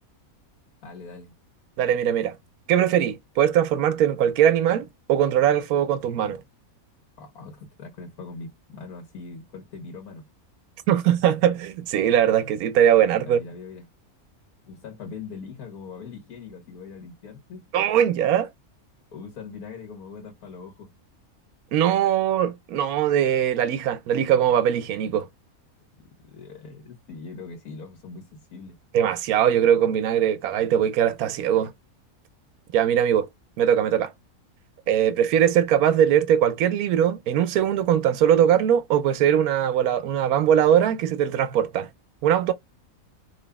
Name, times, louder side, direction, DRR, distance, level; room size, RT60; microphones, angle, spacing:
voice 1, 0.8-1.3 7.2-10.3 13.2-13.8 14.7-17.6 19.1-20.9 26.3-28.8, left 4 dB, 90° left, 1.6 m, -41 dB
voice 2, 1.8-2.3 2.7-6.4 10.9-13.4 17.7-18.5 21.7-25.3 28.9-31.7 32.7-33.3 33.6-34.1 34.9-41.9 42.2-42.5, right 9 dB, 85° right, 1.1 m, -21 dB
5.1 x 3.1 x 2.2 m
omnidirectional pair, 1.5 m